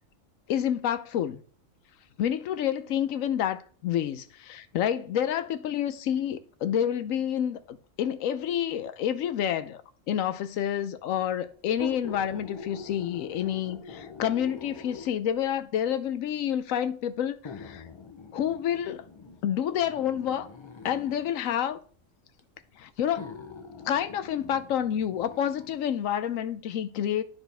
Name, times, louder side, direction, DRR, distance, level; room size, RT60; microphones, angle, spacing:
voice 1, 0.5-1.4 2.2-9.8 10.1-17.8 18.3-19.1 19.4-20.5 20.8-21.8 22.8-23.2 23.8-27.2, left 10 dB, 85° left, 1.0 m, -29 dB
sound 1, 11.7-15.4 16.3-16.4 17.4-21.4 22.4-22.5 23.1-25.8 26.2-26.3, left 5 dB, 35° left, 0.5 m, -44 dB
12.5 x 4.2 x 3.4 m
omnidirectional pair, 1.3 m